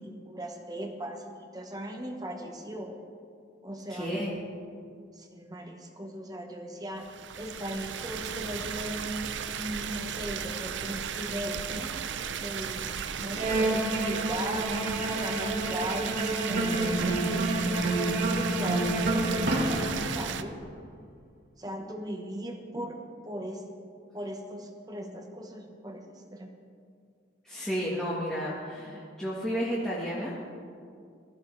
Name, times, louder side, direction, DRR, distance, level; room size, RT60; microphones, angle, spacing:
voice 1, 0.0-3.0 3.6-4.1 5.1-7.1 7.4-9.3 9.6-12.0 12.4-12.8 13.2-14.8 15.2-17.9 18.3-20.6 21.6-23.6 24.1-26.0 26.3-26.5, right 1 dB, 20° right, 3 dB, 1.0 m, -38 dB
voice 2, 3.9-4.3 27.4-30.3, equal, 5° left, -7 dB, 1.4 m, -32 dB
sound 1, 7.0-20.4, right 7 dB, 75° right, 0.5 m, -35 dB
Bowed string instrument, 13.4-20.3, right 2 dB, 40° right, 1.4 m, -32 dB
sound 2, 16.5-20.5, right 1 dB, 60° right, 1.5 m, -29 dB
16.0 x 14.0 x 3.3 m, 2.2 s
head